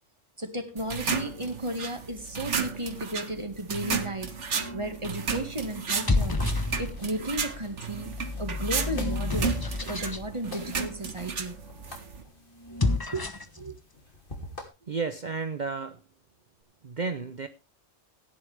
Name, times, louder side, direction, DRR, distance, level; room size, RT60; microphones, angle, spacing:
voice 1, 0.4-4.4 4.7-8.1 8.4-9.6 9.9-11.6 13.1-13.3 13.6-13.8, right 1 dB, 25° right, 1.9 m, -34 dB
sound 1, 0.8-12.2, right 5 dB, 70° right, 1.7 m, -34 dB
sound 2, 4.6-5.0 5.8-7.2 7.9-10.3 12.6-13.6, left 2 dB, 20° left, 0.9 m, -29 dB
sound 3, 6.2-14.7, left 2 dB, 45° left, 3.2 m, -47 dB
voice 2, 14.8-16.0 16.8-17.5, right 4 dB, 40° right, 0.9 m, -32 dB
16.0 x 10.5 x 3.5 m
omnidirectional pair, 1.3 m